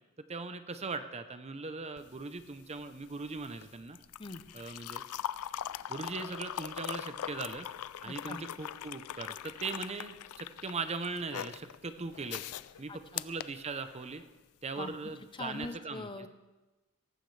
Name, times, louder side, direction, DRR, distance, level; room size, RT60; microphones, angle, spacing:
voice 1, 0.3-4.0 4.5-5.0 5.9-7.7 8.0-12.5 12.8-14.2 14.6-16.3, right 4 dB, 30° right, 10 dB, 0.6 m, -39 dB
sound 1, 2.0-14.3 15.5-15.7, left 10 dB, 80° left, 0.4 m, -42 dB
voice 2, 8.0-8.4 12.9-13.2 14.8-16.3, left 2 dB, 20° left, 10 dB, 0.6 m, -43 dB
18.0 x 15.0 x 3.3 m, 1.1 s
head